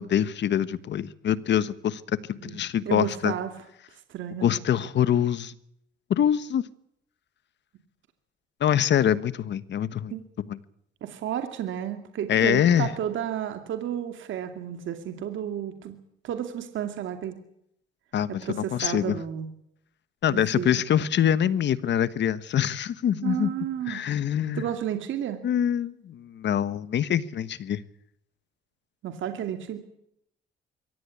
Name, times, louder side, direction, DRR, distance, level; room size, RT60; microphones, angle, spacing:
voice 1, 0.0-2.0 2.3-3.3 4.4-5.5 6.1-6.6 8.6-10.1 10.5-10.6 12.3-12.9 18.1-19.2 20.2-23.5 23.9-24.6 25.4-27.8, left 9 dB, 65° left, 16 dB, 1.3 m, -24 dB
voice 2, 2.9-3.5 4.1-4.5 10.1-10.2 11.0-16.0 16.2-17.4 18.3-19.5 20.3-20.7 23.2-24.0 24.5-25.4 29.0-29.8, right 10 dB, 75° right, 7 dB, 2.4 m, -32 dB
23.0 x 17.5 x 8.5 m, 0.74 s
cardioid pair, 90°, 20 cm